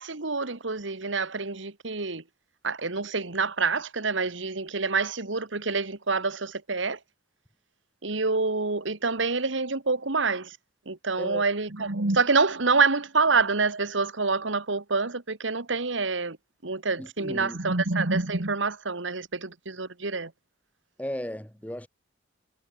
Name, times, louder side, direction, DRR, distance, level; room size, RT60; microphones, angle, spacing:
voice 1, 0.0-2.2 2.6-7.0 8.0-10.6 10.8-16.4 16.6-20.3, right 4 dB, 80° right, 1.9 m, -27 dB
voice 2, 17.0-17.8 21.0-21.9, equal, 10° left, 1.8 m, -36 dB
head